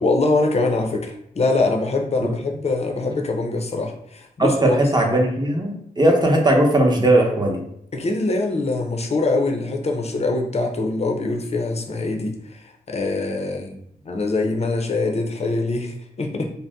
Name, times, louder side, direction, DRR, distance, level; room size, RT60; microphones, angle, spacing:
voice 1, 0.0-4.8 7.9-13.8 14.0-16.5, left 3 dB, 40° left, 3 dB, 0.6 m, -23 dB
voice 2, 4.4-7.6, right 1 dB, 25° right, 1 dB, 0.7 m, -18 dB
2.7 x 2.1 x 3.4 m, 0.73 s
cardioid pair, 70°, 16 cm